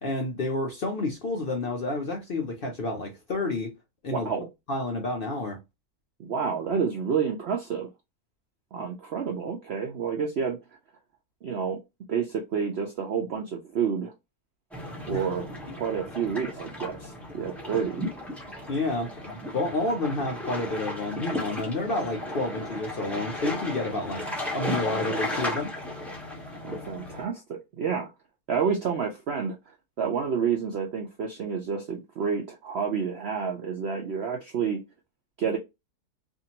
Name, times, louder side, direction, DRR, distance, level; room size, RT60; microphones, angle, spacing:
voice 1, 0.0-3.7 4.0-4.3 4.7-5.6 15.1-15.3 18.7-24.2 24.5-25.7, left 2 dB, 70° left, 0.5 m, -30 dB
voice 2, 4.1-4.5 6.2-7.9 8.7-10.6 11.4-11.8 12.1-14.1 15.1-15.5 15.7-18.0 26.6-28.1 28.5-29.6 30.0-34.8 35.4-35.6, right 6 dB, 70° right, 0.6 m, -29 dB
sound 1, 14.7-27.2, left 1 dB, ahead, 0.4 m, -35 dB
2.7 x 2.5 x 2.8 m
omnidirectional pair, 1.7 m